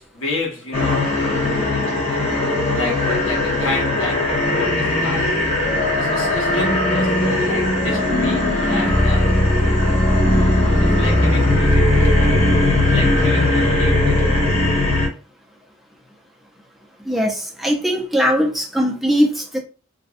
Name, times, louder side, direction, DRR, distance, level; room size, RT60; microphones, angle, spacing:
voice 1, 0.0-2.3 2.7-5.3 5.9-9.4 9.8-9.9 10.7-14.4, left 2 dB, 80° left, 1.2 m, -30 dB
sound 1, 0.7-15.1, left 1 dB, 30° left, 0.9 m, -18 dB
voice 2, 17.1-19.6, equal, ahead, 0.4 m, -20 dB
2.5 x 2.1 x 2.5 m
head